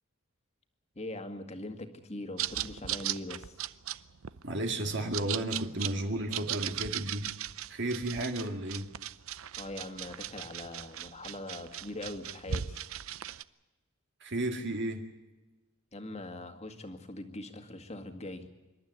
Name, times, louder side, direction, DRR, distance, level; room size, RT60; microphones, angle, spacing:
voice 1, 1.0-3.6 9.6-12.9 15.9-18.5, left 1 dB, 30° left, 6 dB, 2.0 m, -42 dB
sound 1, 2.4-13.4, right 11 dB, 75° right, 0.6 m, -38 dB
voice 2, 4.4-7.3 7.7-8.9 14.2-15.1, right 1 dB, 55° right, 4 dB, 2.1 m, -33 dB
26.5 x 12.5 x 9.7 m, 1.1 s
head